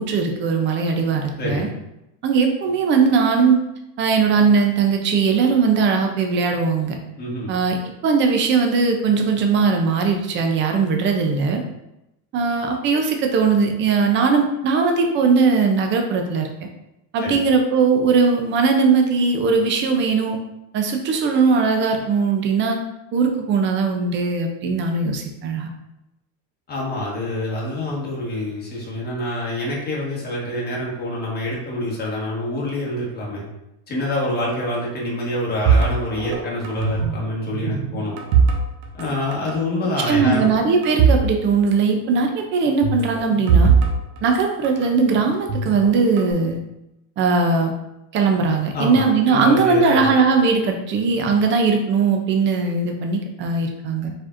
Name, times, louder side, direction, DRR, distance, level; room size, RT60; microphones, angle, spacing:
voice 1, 0.0-1.7 2.2-3.6 4.0-7.0 7.5-7.8 8.0-11.6 12.3-16.5 17.1-20.4 20.7-22.8 23.1-25.7 40.0-43.7 44.2-46.6 47.2-47.7 48.1-54.1, right 4 dB, 25° right, 4 dB, 0.4 m, -19 dB
voice 2, 7.2-7.5 17.2-17.3 26.7-33.4 33.9-38.2 38.9-40.5 48.7-50.1, left 1 dB, 20° left, -4 dB, 1.3 m, -26 dB
sound 1, 35.7-37.2 37.5-39.1 39.3-39.6 40.2-41.3 41.5-41.6 42.8-44.9 45.5-46.3, right 5 dB, 80° right, 1.1 m, -20 dB
4.8 x 4.3 x 2.4 m, 0.89 s
cardioid pair, 150°, 49 cm